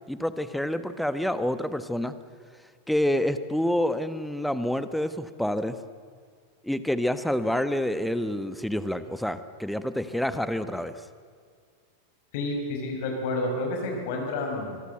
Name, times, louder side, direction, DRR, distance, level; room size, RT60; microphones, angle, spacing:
voice 1, 0.1-2.1 2.9-5.8 6.6-11.0, left 1 dB, ahead, 12 dB, 1.3 m, -28 dB
voice 2, 12.3-14.8, left 2 dB, 50° left, 2 dB, 5.7 m, -30 dB
26.0 x 22.5 x 7.9 m, 2.1 s
figure-of-eight pair, 90°, 0 cm